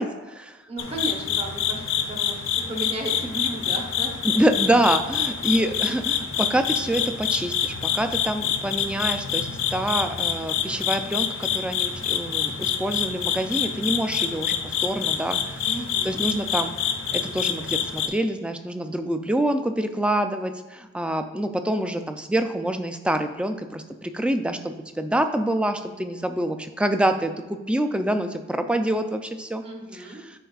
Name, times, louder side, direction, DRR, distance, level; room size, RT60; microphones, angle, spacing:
voice 1, 0.0-0.6 4.2-15.6 16.0-16.7 17.1-29.6 29.9-30.4, right 1 dB, 5° right, 7 dB, 0.3 m, -26 dB
voice 2, 0.7-4.1 15.6-16.2 29.6-30.2, right 1 dB, 30° right, 0 dB, 1.0 m, -34 dB
sound 1, 0.8-18.1, left 8 dB, 85° left, 0.6 m, -27 dB
10.0 x 4.6 x 2.4 m, 1.2 s
head